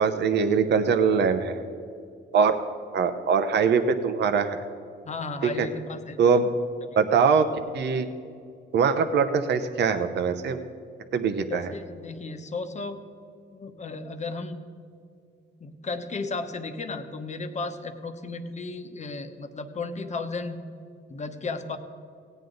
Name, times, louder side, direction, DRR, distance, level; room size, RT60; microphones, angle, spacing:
voice 1, 0.0-1.6 2.3-2.6 2.9-4.6 5.4-5.7 6.2-6.5 7.0-7.5 7.7-8.1 8.7-10.6 11.1-11.7, right 6 dB, 60° right, 8 dB, 0.8 m, -22 dB
voice 2, 5.0-6.2 6.8-7.0 11.5-13.0 13.5-14.6 15.6-20.6 21.1-21.8, left 3 dB, 35° left, 8 dB, 1.1 m, -34 dB
17.0 x 9.1 x 3.9 m, 2.4 s
cardioid pair, 90°, 20 cm